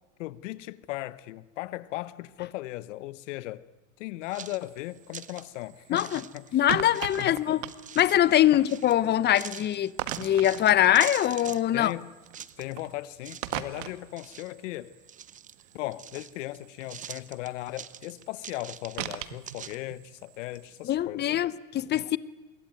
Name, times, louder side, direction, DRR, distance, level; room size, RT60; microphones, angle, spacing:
voice 1, 0.2-3.6 4.0-6.5 7.2-7.6 8.5-8.6 11.7-12.1 12.6-14.9 15.7-21.4 21.9-22.0, left 17 dB, 65° left, 1.3 m, -37 dB
sound 1, 4.2-21.0, right 13 dB, 70° right, 1.8 m, -43 dB
sound 2, 4.3-5.5 6.0-6.6 6.9-8.2 8.7-9.0 9.3-11.9 12.2-12.9 13.2-13.7 14.0-14.7 15.1-16.6 16.8-19.1 19.5-19.8, right 9 dB, 20° right, 0.8 m, -43 dB
voice 2, 5.9-6.2 6.5-7.6 8.0-9.9 10.2-11.9 20.8-22.2, left 12 dB, 25° left, 0.9 m, -23 dB
26.0 x 22.5 x 9.2 m
supercardioid pair, 125°, 39 cm